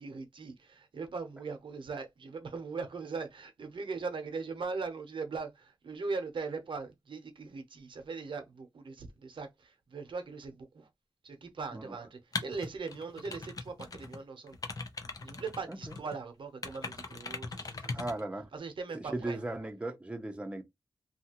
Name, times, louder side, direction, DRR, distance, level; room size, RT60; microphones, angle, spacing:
voice 1, 0.0-10.9 11.2-14.6 15.2-19.4, right 4 dB, 80° right, 0.7 m, -40 dB
sound 1, 12.3-14.2 14.5-16.2 16.6-18.2, left 3 dB, 45° left, 0.6 m, -40 dB
voice 2, 17.9-18.5 18.9-20.6, right 2 dB, 15° right, 0.5 m, -37 dB
2.8 x 2.3 x 2.8 m
wide cardioid pair, 95°, 8 cm